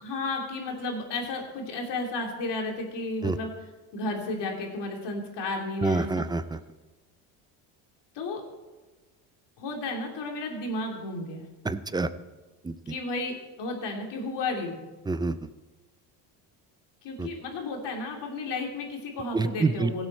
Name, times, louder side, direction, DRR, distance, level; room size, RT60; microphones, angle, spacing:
voice 1, 0.0-3.5 3.9-6.2 8.1-8.4 9.6-11.4 12.9-14.8 17.0-20.1, left 2 dB, 55° left, 1 dB, 2.9 m, -33 dB
voice 2, 5.8-6.6 11.6-12.1 12.6-12.7 15.1-15.5 17.2-17.3 19.3-19.9, right 3 dB, 10° right, 13 dB, 0.4 m, -27 dB
16.0 x 7.9 x 4.3 m, 1.2 s
supercardioid pair, 95°, 48 cm